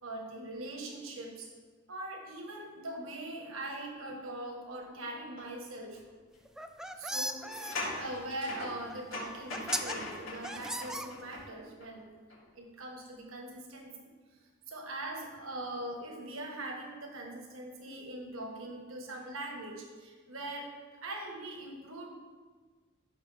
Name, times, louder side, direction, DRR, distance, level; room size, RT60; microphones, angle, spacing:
voice 1, 0.0-1.5 1.9-6.0 6.9-12.1 12.5-14.1 14.7-20.7 21.0-22.1, right 1 dB, 80° right, 1 dB, 1.5 m, -41 dB
sound 1, 5.4-5.5 5.9-6.0 7.4-11.9 12.3-12.4, left 2 dB, 80° left, 3.3 m, -41 dB
sound 2, 6.4-7.7 8.9-9.0 9.5-9.9 10.4-11.5, right 1 dB, 5° right, 0.4 m, -36 dB
14.5 x 6.2 x 3.5 m, 1.4 s
head